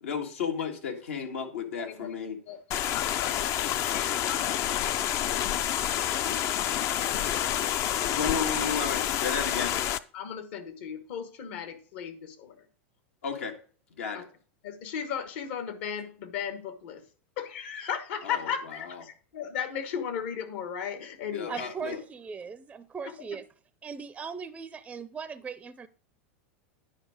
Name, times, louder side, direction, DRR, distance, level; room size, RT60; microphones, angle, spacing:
voice 1, 0.0-2.4 7.9-9.7 13.2-13.5 14.0-14.2 18.2-18.5 21.3-22.0, left 6 dB, 85° left, 4 dB, 1.7 m, -33 dB
voice 2, 1.8-2.1 2.5-2.6 2.9-4.8 5.4-5.5 6.2-6.8 7.9-8.5 10.1-12.7 14.1-14.3 14.6-17.0 17.4-21.7 23.0-23.4, left 8 dB, 65° left, 10 dB, 1.4 m, -36 dB
sound 1, 2.7-10.0, left 11 dB, 45° left, 0.4 m, -28 dB
voice 3, 21.5-23.4 23.8-25.9, right 6 dB, 15° right, 12 dB, 0.4 m, -39 dB
9.9 x 4.9 x 4.9 m, 0.41 s
hypercardioid pair, 115°, 7 cm